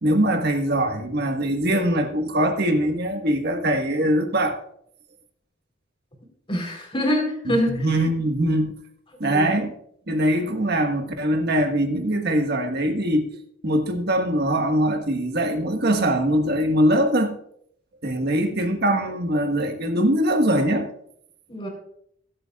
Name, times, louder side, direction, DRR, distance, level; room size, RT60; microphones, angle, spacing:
voice 1, 0.0-4.6 7.4-8.7 9.2-9.7 10.1-13.3 13.6-17.3 18.0-20.9, right 1 dB, 50° right, 4 dB, 1.5 m, -22 dB
voice 2, 6.5-7.9 9.2-9.5 21.5-21.7, equal, 25° left, 0 dB, 3.7 m, -25 dB
22.0 x 8.6 x 2.4 m, 0.69 s
head